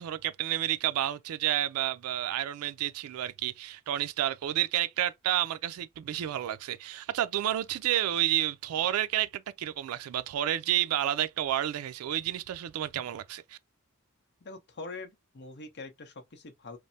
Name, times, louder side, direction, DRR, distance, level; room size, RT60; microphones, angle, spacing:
voice 1, 0.0-13.6, right 12 dB, 90° right, 0.3 m, -30 dB
voice 2, 14.4-16.8, left 3 dB, 55° left, 0.7 m, -44 dB
3.1 x 2.0 x 2.6 m
head